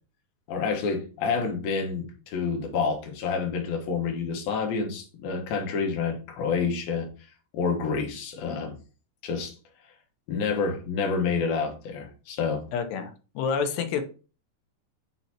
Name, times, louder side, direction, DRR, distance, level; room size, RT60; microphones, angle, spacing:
voice 1, 0.5-7.1 7.5-8.7 9.2-9.5 10.3-12.6, left 5 dB, 70° left, 2 dB, 2.9 m, -28 dB
voice 2, 12.7-14.0, left 6 dB, 85° left, 7 dB, 3.0 m, -28 dB
9.5 x 4.0 x 2.9 m, 0.35 s
omnidirectional pair, 4.7 m